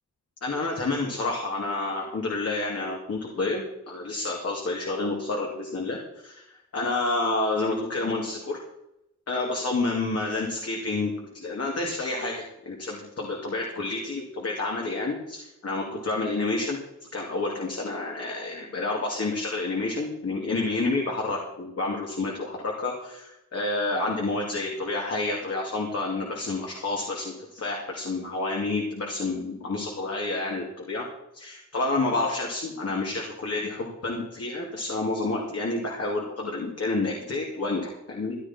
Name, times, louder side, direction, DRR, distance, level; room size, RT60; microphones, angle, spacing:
voice 1, 0.4-6.4 6.7-8.6 9.3-16.8 17.1-31.0 31.3-38.4, left 2 dB, 55° left, -1 dB, 2.6 m, -29 dB
15.0 x 11.5 x 4.4 m, 0.85 s
wide cardioid pair, 140°, 29 cm